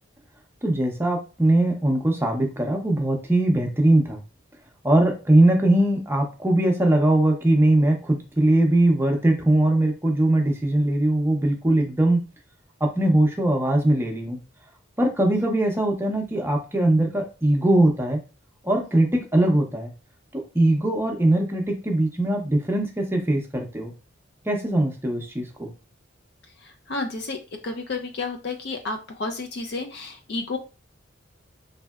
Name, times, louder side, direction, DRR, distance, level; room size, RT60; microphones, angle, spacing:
voice 1, 0.6-4.2 4.8-12.2 12.8-14.4 15.0-18.2 18.6-19.9 20.3-23.9 24.5-25.7, right 1 dB, 10° right, 2 dB, 0.6 m, -21 dB
voice 2, 26.6-27.4 27.6-30.6, left 3 dB, 55° left, 4 dB, 0.4 m, -31 dB
3.2 x 2.7 x 2.3 m, 0.32 s
head